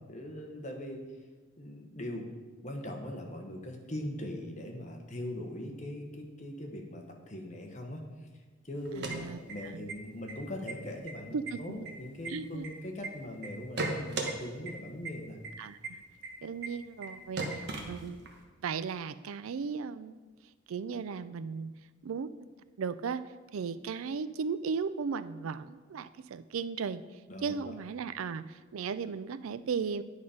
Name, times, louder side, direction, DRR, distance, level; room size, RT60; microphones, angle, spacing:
voice 1, 0.1-1.0 1.6-2.3 2.6-8.3 8.6-15.4 27.3-27.5, left 1 dB, 35° left, 2 dB, 1.1 m, -40 dB
sound 1, 8.8-9.9 10.3-10.4 10.7-11.1 11.5-13.1 13.4-14.3 14.7-14.8 15.0-15.1 15.4-15.5 15.8-15.9 16.2-16.3 16.6-16.7 17.0-17.1 17.4-18.4, right 3 dB, 55° right, 1.1 m, -36 dB
voice 2, 8.9-10.0 11.3-11.9 12.3-12.7 15.6-16.0 16.4-18.2 18.6-20.2 20.7-21.7 22.0-22.5 22.8-30.0, right 5 dB, 80° right, 15 dB, 0.4 m, -36 dB
9.7 x 5.5 x 5.0 m, 1.4 s
head